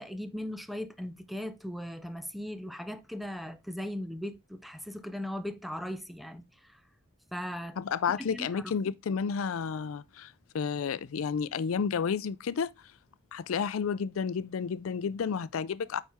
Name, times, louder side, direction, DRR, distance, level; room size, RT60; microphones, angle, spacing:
voice 1, 0.0-6.4 7.3-7.8 8.2-8.7, equal, ahead, 0.5 m, -38 dB
voice 2, 7.8-12.7 13.3-16.0, left 6 dB, 80° left, 0.4 m, -31 dB
8.9 x 4.2 x 3.5 m
head